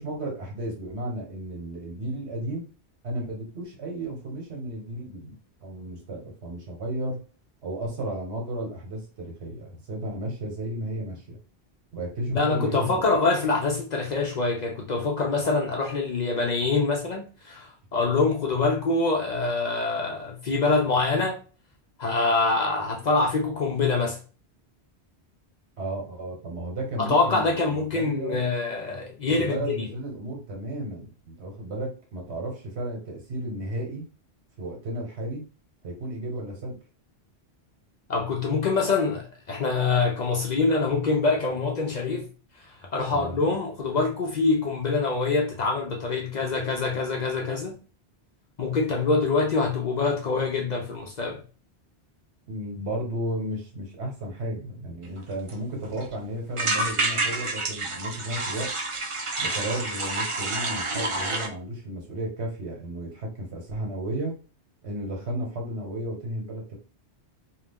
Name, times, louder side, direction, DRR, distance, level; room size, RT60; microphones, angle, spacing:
voice 1, 0.0-2.7 3.0-5.3 5.6-7.2 7.6-11.4 11.9-13.1 25.8-28.3 29.3-34.1 34.6-35.5 35.8-36.8 43.1-43.4 52.5-58.7 59.4-64.4 64.8-66.8, right 1 dB, 80° right, 1.4 m, -33 dB
voice 2, 12.3-21.4 22.0-24.2 27.0-29.8 38.1-42.3 42.9-47.8 48.6-51.4, left 3 dB, 50° left, 0.6 m, -25 dB
sound 1, 55.2-55.3 55.5-55.6 55.8-56.1 56.6-61.5, right 2 dB, 35° right, 0.6 m, -28 dB
2.7 x 2.4 x 3.5 m
omnidirectional pair, 1.1 m